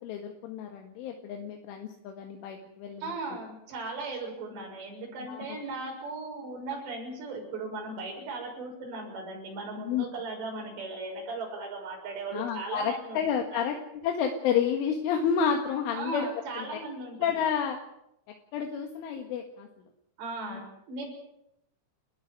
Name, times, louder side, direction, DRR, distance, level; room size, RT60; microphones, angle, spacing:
voice 1, 0.0-3.0 5.3-5.5 9.8-10.1 12.3-16.3 16.6-16.7 17.2-17.8 18.5-19.7 20.5-20.6, left 7 dB, 75° left, 3 dB, 4.2 m, -30 dB
voice 2, 3.0-13.2 13.5-13.7 15.9-17.5 20.2-21.1, right 3 dB, 60° right, 0 dB, 8.5 m, -37 dB
30.0 x 12.5 x 9.5 m, 0.81 s
omnidirectional pair, 5.7 m